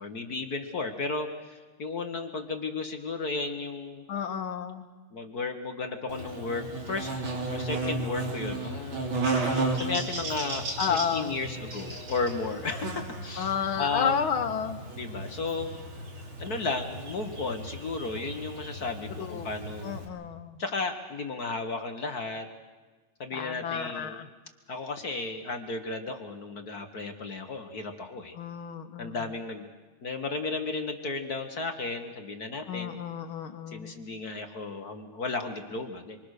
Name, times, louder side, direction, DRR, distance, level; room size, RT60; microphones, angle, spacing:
voice 1, 0.0-4.0 5.1-7.1 7.5-9.1 9.7-14.2 14.9-15.7 16.4-20.0 20.6-22.5 23.2-24.2 24.7-28.3 29.0-29.7 30.0-33.0 33.7-36.2, left 3 dB, 45° left, 6 dB, 1.8 m, -34 dB
voice 2, 4.1-4.9 10.8-11.4 13.4-14.8 19.2-19.5 19.8-20.6 23.3-24.3 28.3-29.3 32.7-34.0, left 7 dB, 70° left, 8 dB, 2.2 m, -31 dB
Buzz, 6.1-20.1, right 2 dB, 65° right, 4.0 m, -34 dB
26.5 x 25.0 x 6.6 m, 1.3 s
omnidirectional pair, 2.4 m